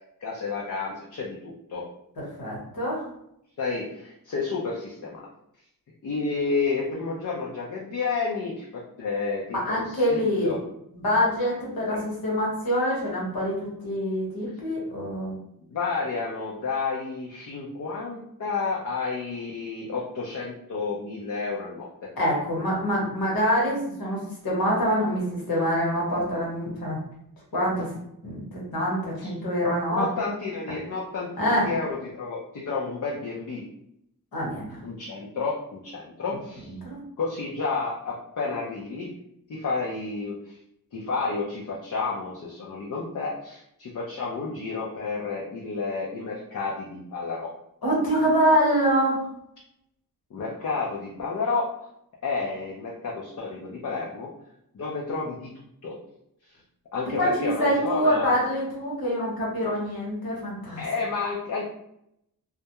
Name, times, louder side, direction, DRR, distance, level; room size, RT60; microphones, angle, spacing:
voice 1, 0.2-1.8 3.6-5.2 6.0-10.6 11.9-12.0 15.7-22.1 29.2-29.3 29.9-33.7 34.8-36.7 37.2-39.1 39.5-40.6 40.9-47.5 50.3-51.9 52.2-54.3 54.7-55.5 55.8-56.0 56.5-56.6 56.9-58.3 60.8-61.6, left 4 dB, 55° left, -4 dB, 0.5 m, -31 dB
voice 2, 2.4-3.0 9.6-10.6 10.9-13.6 13.8-15.3 22.2-27.0 27.5-28.4 28.7-30.1 31.4-31.7 34.3-34.8 36.7-37.0 47.8-49.2 57.2-60.8, equal, 75° left, -4 dB, 1.1 m, -25 dB
2.3 x 2.1 x 2.8 m, 0.77 s
wide cardioid pair, 75°, 36 cm